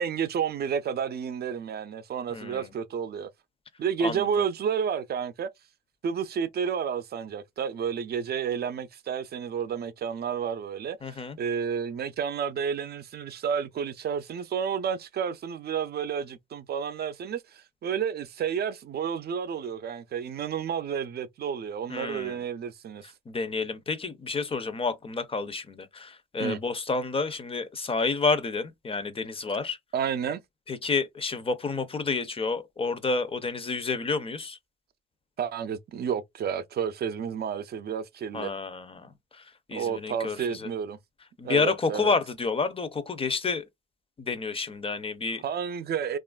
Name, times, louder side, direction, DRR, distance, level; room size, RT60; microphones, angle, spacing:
voice 1, 0.0-3.3 3.8-5.5 6.0-23.1 26.4-26.6 29.9-30.4 35.4-38.5 39.7-41.0 41.4-42.1 45.4-46.2, right 7 dB, 55° right, 0.5 m, -31 dB
voice 2, 2.3-2.6 4.0-4.2 11.0-11.4 21.9-22.4 23.3-29.8 30.7-34.6 38.3-39.1 39.7-40.7 41.4-43.6 44.2-45.4, left 4 dB, 30° left, 0.5 m, -29 dB
3.0 x 2.4 x 2.3 m
cardioid pair, 90°, 20 cm